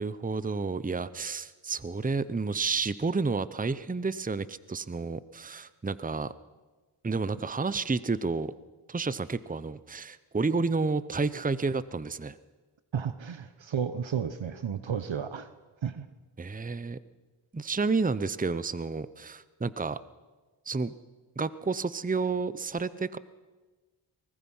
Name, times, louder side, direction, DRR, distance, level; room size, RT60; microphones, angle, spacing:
voice 1, 0.0-6.3 7.0-8.5 8.9-12.4 16.4-17.0 17.5-20.0 20.7-20.9 21.4-23.2, right 4 dB, 15° right, 16 dB, 0.8 m, -30 dB
voice 2, 12.9-15.5 15.8-16.1, right 7 dB, 65° right, 12 dB, 1.0 m, -32 dB
23.5 x 20.0 x 5.6 m, 1.3 s
cardioid pair, 50°, 49 cm